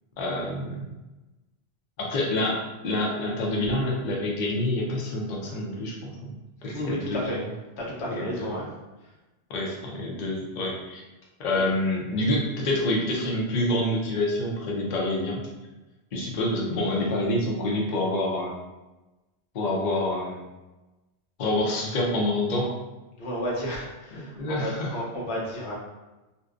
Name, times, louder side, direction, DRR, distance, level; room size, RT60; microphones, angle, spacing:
voice 1, 0.2-0.9 2.0-6.3 6.6-7.4 8.1-8.5 9.5-11.0 11.4-15.4 16.1-18.6 19.5-20.4 21.4-22.7 24.1-24.9, left 1 dB, 55° left, -3 dB, 0.6 m, -27 dB
voice 2, 6.6-7.4 7.8-8.7 9.0-9.1 23.2-25.8, equal, 85° left, -3 dB, 1.0 m, -32 dB
2.6 x 2.1 x 2.4 m, 1.1 s
omnidirectional pair, 1.1 m